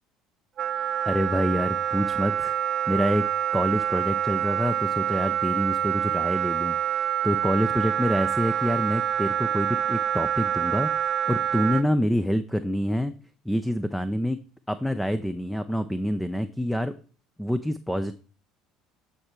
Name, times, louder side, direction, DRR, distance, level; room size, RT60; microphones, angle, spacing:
Wind instrument woodwind instrument, 0.6-11.8, right 9 dB, 50° right, 0.4 m, -26 dB
voice 1, 1.1-2.6 2.9-3.2 3.5-13.1 13.5-14.4 14.7-16.9 17.4-18.1, equal, 5° left, 11 dB, 0.5 m, -27 dB
8.6 x 4.3 x 4.6 m, 0.39 s
hypercardioid pair, 70°, 0 cm